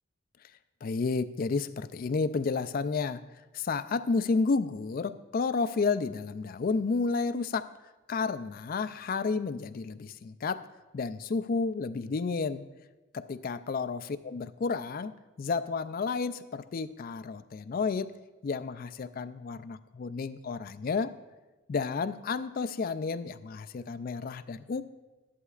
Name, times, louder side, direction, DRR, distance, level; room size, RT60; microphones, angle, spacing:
voice 1, 0.8-3.2 3.5-7.7 8.1-10.7 10.9-12.6 13.1-15.1 15.4-18.2 18.4-21.2 21.7-24.8, left 4 dB, 40° left, 12 dB, 0.3 m, -31 dB
13.5 x 11.0 x 2.4 m, 1.2 s
head